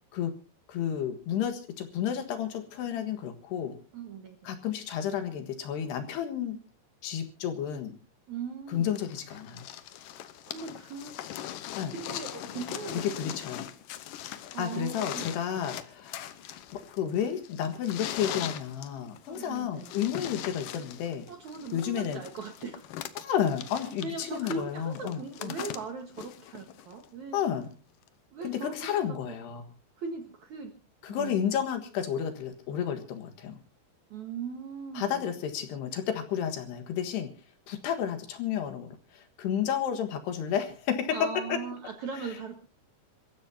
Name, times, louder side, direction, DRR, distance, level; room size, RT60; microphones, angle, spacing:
voice 1, 0.7-3.8 4.5-6.6 7.0-8.0 8.7-9.7 11.8-11.9 13.0-13.7 14.6-16.3 16.7-21.3 21.7-22.2 23.2-25.5 27.3-27.7 28.4-29.6 31.0-33.6 35.0-37.3 37.7-41.6, left 9 dB, 70° left, 7 dB, 3.5 m, -31 dB
voice 2, 3.9-4.4 8.3-8.9 9.9-11.2 11.9-13.3 14.5-15.4 19.3-19.9 21.3-22.9 24.0-27.4 28.3-29.6 30.0-30.7 31.1-31.7 34.1-35.3 41.1-42.6, right 5 dB, 60° right, 5 dB, 2.1 m, -39 dB
sound 1, 9.0-27.0 28.1-28.2, left 12 dB, 85° left, 1.9 m, -40 dB
27.5 x 15.0 x 2.8 m, 0.33 s
omnidirectional pair, 5.2 m